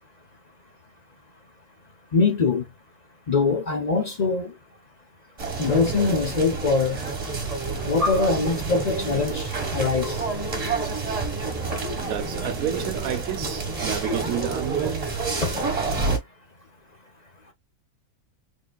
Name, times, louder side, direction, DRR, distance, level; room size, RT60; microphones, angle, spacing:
voice 1, 2.1-2.6 3.3-4.5 5.6-7.0 7.9-10.2 15.4-15.5, left 4 dB, 40° left, 0.6 m, -23 dB
Ext around marketplace, 5.4-16.2, right 3 dB, 25° right, 1.4 m, -28 dB
voice 2, 12.0-15.4, right 10 dB, 75° right, 1.1 m, -31 dB
3.8 x 3.4 x 2.3 m
omnidirectional pair, 1.6 m